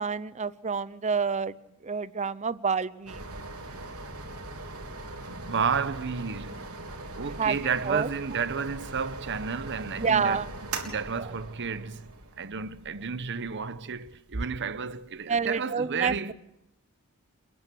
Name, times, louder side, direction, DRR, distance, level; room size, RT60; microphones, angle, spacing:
voice 1, 0.0-1.5 1.8-3.2 7.4-8.1 10.0-10.5 15.3-16.3, right 5 dB, 30° right, 0.7 m, -28 dB
sound 1, 3.1-15.5, right 2 dB, 90° right, 3.7 m, -41 dB
voice 2, 5.3-6.8 7.2-12.1 12.4-16.3, right 6 dB, 55° right, 1.0 m, -32 dB
29.5 x 10.5 x 8.3 m
head